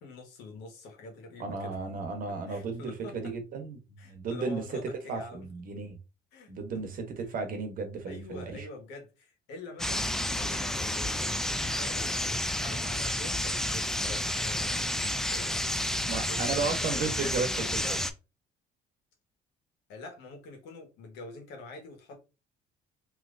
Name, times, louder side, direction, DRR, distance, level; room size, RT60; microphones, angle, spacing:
voice 1, 0.0-1.8 2.5-3.4 4.0-5.5 6.3-6.9 7.3-7.4 8.1-15.8 16.2-18.0 19.9-22.2, left 3 dB, 90° left, 1.2 m, -45 dB
voice 2, 1.4-4.6 5.1-6.0 6.5-8.7 15.9-18.0, right 4 dB, 55° right, 1.0 m, -34 dB
sound 1, 9.8-18.1, left 1 dB, 5° left, 0.3 m, -30 dB
3.2 x 2.8 x 2.5 m
cardioid pair, 110°, 17 cm